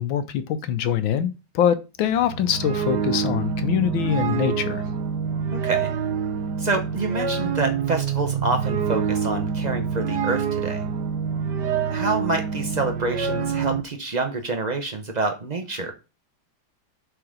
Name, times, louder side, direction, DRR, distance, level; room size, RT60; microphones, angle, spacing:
voice 1, 0.0-4.8, left 9 dB, 75° left, 1.5 m, -24 dB
sound 1, 2.0-13.8, right 6 dB, 65° right, 1.2 m, -26 dB
voice 2, 5.5-5.9 6.6-10.8 11.9-15.9, right 3 dB, 85° right, 0.3 m, -27 dB
7.9 x 3.9 x 5.0 m
omnidirectional pair, 2.3 m